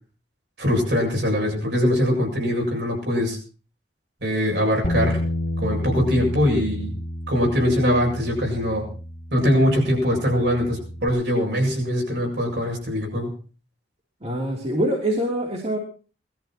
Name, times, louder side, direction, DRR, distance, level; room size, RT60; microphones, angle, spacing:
voice 1, 0.6-3.4 4.2-5.2 5.6-6.9 7.3-8.9 9.3-13.3, equal, 75° right, 0 dB, 7.8 m, -22 dB
Bass guitar, 4.8-11.1, left 1 dB, 45° left, 3.1 m, -30 dB
voice 2, 14.2-15.8, right 1 dB, 35° right, -1 dB, 3.3 m, -24 dB
20.0 x 13.5 x 4.5 m, 0.38 s
head